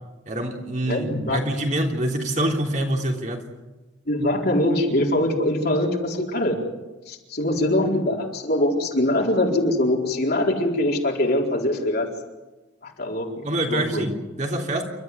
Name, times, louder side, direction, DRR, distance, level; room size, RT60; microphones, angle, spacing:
voice 1, 0.3-3.4 13.4-14.9, right 1 dB, 40° right, 1 dB, 3.5 m, -25 dB
voice 2, 0.9-1.5 4.1-6.6 7.1-12.1 12.8-14.1, left 1 dB, 55° left, 0 dB, 4.3 m, -23 dB
29.5 x 13.5 x 9.6 m, 1.1 s
head